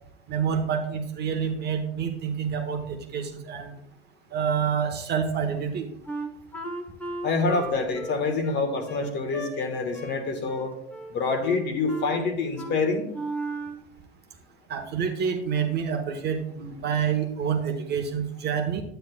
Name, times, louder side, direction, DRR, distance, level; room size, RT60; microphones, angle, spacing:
voice 1, 0.3-3.7 4.3-5.9 14.7-18.8, right 7 dB, 30° right, 3 dB, 1.1 m, -28 dB
Wind instrument woodwind instrument, 6.1-9.5 9.9-10.2 10.5-11.1 11.4-12.2 12.6-12.8 13.1-13.8, right 2 dB, 5° left, 1.1 m, -35 dB
voice 2, 7.2-10.7 11.1-13.1, left 3 dB, 30° left, 6 dB, 1.4 m, -26 dB
10.0 x 9.1 x 2.2 m, 0.72 s
hypercardioid pair, 100°, 35 cm